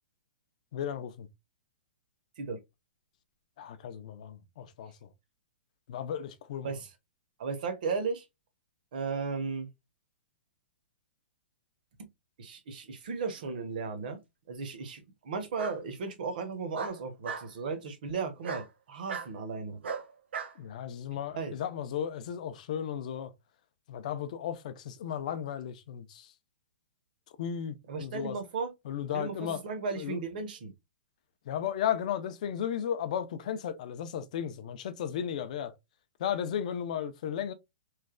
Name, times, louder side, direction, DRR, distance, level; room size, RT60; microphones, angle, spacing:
voice 1, 0.7-1.3 3.6-5.1 5.9-6.7 20.6-23.3 23.9-26.3 27.4-28.4 28.9-29.6 30.0-30.2 31.5-35.7 36.2-37.5, left 9 dB, 40° left, 0.4 m, -35 dB
voice 2, 7.4-8.2 8.9-9.7 12.4-14.2 14.5-19.8 21.3-21.5 27.9-28.7 29.1-30.7, right 4 dB, 50° right, 0.8 m, -35 dB
Bark, 13.4-14.0 15.6-15.8 16.7-17.5 18.4-18.7 19.1-19.3 19.8-20.5, right 6 dB, 85° right, 0.7 m, -37 dB
3.1 x 2.1 x 2.4 m
hypercardioid pair, 170°, 6 cm